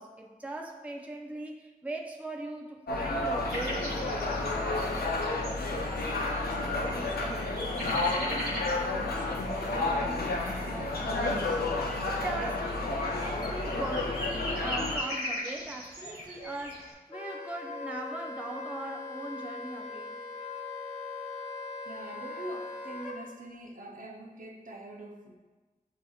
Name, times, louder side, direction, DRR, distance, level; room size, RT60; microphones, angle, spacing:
voice 1, 0.0-4.9 12.0-12.6 13.2-20.2, right 2 dB, 10° right, 1 dB, 0.4 m, -40 dB
sound 1, 2.9-15.0, left 2 dB, 85° left, 0.5 m, -31 dB
sound 2, 3.5-16.9, equal, 85° right, 1.3 m, -40 dB
voice 2, 6.1-9.4 9.7-11.8 21.8-25.4, right 1 dB, 60° right, 1 dB, 0.6 m, -44 dB
Wind instrument woodwind instrument, 17.1-23.1, left 3 dB, 40° left, 1.2 m, -40 dB
7.5 x 2.8 x 2.3 m, 1.2 s
wide cardioid pair, 70°, 16 cm